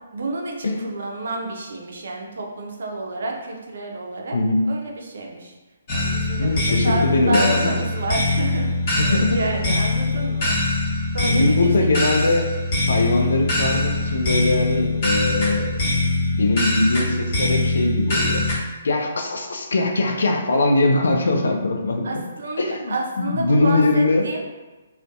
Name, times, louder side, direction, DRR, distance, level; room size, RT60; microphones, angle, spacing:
voice 1, 0.1-4.4 4.7-5.6 5.9-10.9 11.1-12.4 22.0-24.5, right 2 dB, 60° right, 1 dB, 0.5 m, -30 dB
sound 1, 5.9-18.6, left 2 dB, 40° left, 0.9 m, -23 dB
voice 2, 6.4-7.7 9.0-9.8 11.2-12.5 12.9-15.7 16.3-18.5 18.8-22.2 22.6-24.3, left 2 dB, 70° left, 3 dB, 0.4 m, -21 dB
2.5 x 2.1 x 2.3 m, 1.1 s
figure-of-eight pair, 135°, 0 cm